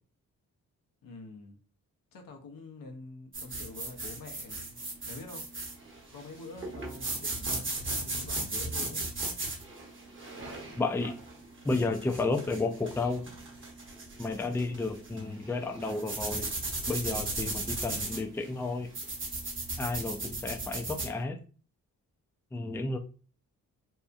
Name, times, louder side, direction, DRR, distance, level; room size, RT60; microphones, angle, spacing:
voice 1, 1.0-1.6 2.1-4.8 5.1-5.4 6.1-9.0, left 3 dB, 70° left, 0.7 m, -46 dB
sound 1, 3.3-21.1, right 2 dB, 35° right, 1.0 m, -37 dB
voice 2, 10.8-11.2 11.6-13.3 14.2-16.5 16.9-18.9 19.8-21.4 22.5-23.0, left 3 dB, 5° left, 0.4 m, -32 dB
2.7 x 2.3 x 2.4 m
supercardioid pair, 45°, 35 cm